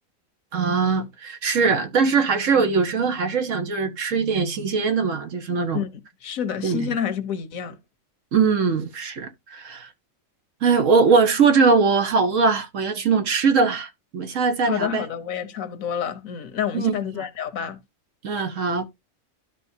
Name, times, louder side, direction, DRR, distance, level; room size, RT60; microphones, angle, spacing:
voice 1, 0.5-5.8 6.6-6.9 8.3-9.9 10.6-15.0 16.7-17.2 18.2-18.8, right 5 dB, 70° right, 1.4 m, -21 dB
voice 2, 6.2-7.8 14.6-17.8, left 8 dB, 80° left, 1.3 m, -28 dB
12.0 x 5.0 x 2.7 m
omnidirectional pair, 1.4 m